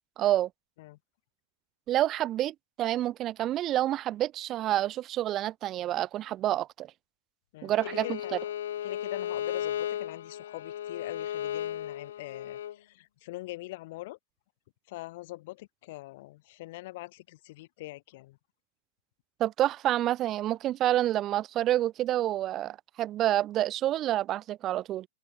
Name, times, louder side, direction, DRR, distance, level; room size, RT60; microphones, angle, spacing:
voice 1, 0.2-0.5 1.9-6.9 7.6-8.4 19.4-25.1, right 13 dB, 25° right, 1.0 m, -28 dB
voice 2, 7.5-8.5 8.8-14.2 14.9-18.4, left 19 dB, 45° left, 3.7 m, -43 dB
Bowed string instrument, 7.7-12.8, left 11 dB, 85° left, 2.0 m, -35 dB
open air
supercardioid pair, 170°, 0 cm